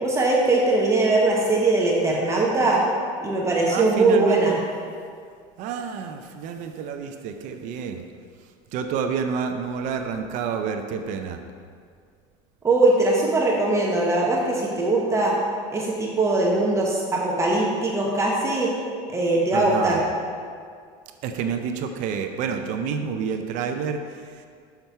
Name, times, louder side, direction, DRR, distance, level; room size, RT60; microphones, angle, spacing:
voice 1, 0.0-2.8 3.2-4.6 12.6-15.4 15.7-18.7 19.1-20.0, right 2 dB, 20° right, -2 dB, 1.0 m, -21 dB
voice 2, 3.7-4.6 5.6-8.0 8.7-11.4 19.5-20.0 21.2-24.5, right 6 dB, 60° right, 6 dB, 0.5 m, -29 dB
6.5 x 5.8 x 4.6 m, 2.1 s
cardioid pair, 135°, 15 cm